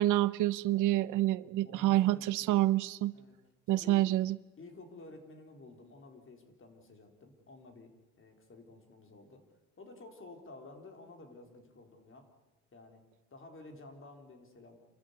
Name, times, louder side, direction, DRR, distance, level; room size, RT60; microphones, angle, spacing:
voice 1, 0.0-3.1 3.7-4.4, right 15 dB, 90° right, 18 dB, 0.7 m, -28 dB
voice 2, 1.6-2.6 3.1-3.4 3.7-4.1 4.6-7.9 8.2-9.4 9.8-12.3 12.7-13.0 13.3-14.8, left 2 dB, 45° left, 5 dB, 4.2 m, -52 dB
28.0 x 14.0 x 9.8 m, 1.2 s
cardioid pair, 90°, 30 cm